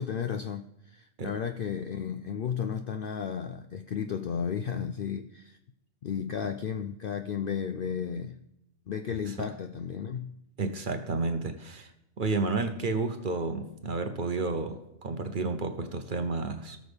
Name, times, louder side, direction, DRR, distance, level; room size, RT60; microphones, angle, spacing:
voice 1, 0.0-5.6 6.0-8.4 8.9-10.3, left 7 dB, 65° left, 0.5 m, -33 dB
voice 2, 9.1-9.5 10.6-11.9 12.2-16.8, right 3 dB, 45° right, 0.8 m, -31 dB
17.5 x 6.3 x 3.5 m
omnidirectional pair, 1.4 m